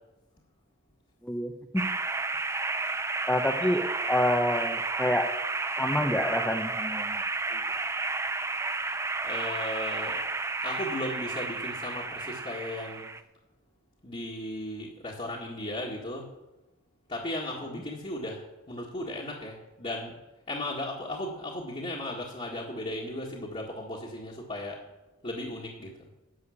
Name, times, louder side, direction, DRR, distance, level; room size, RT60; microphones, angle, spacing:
voice 1, 1.2-1.8 3.3-5.3 5.8-7.2 7.5-7.6, left 1 dB, 5° left, 1 dB, 0.8 m, -28 dB
sound 1, 1.8-13.2, right 3 dB, 15° right, 0.4 m, -32 dB
voice 2, 9.2-10.2 10.6-13.1 14.0-16.3 17.1-20.1 20.5-24.8 25.2-26.0, left 1 dB, 30° left, -4 dB, 1.8 m, -36 dB
11.5 x 7.1 x 8.5 m, 0.99 s
head